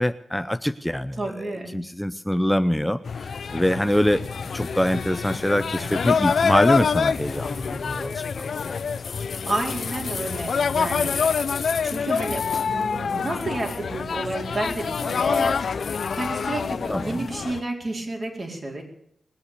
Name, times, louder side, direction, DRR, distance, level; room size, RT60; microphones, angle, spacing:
voice 1, 0.0-1.2 1.7-4.2 4.5-8.5 16.9-17.2, equal, 5° left, 11 dB, 0.7 m, -24 dB
voice 2, 1.1-1.7 5.7-6.0 9.5-11.3 11.8-18.8, right 2 dB, 45° right, 1 dB, 4.5 m, -31 dB
sound 1, 3.0-17.6, left 6 dB, 70° left, 0.6 m, -26 dB
20.0 x 8.1 x 8.4 m, 0.72 s
supercardioid pair, 45°, 0 cm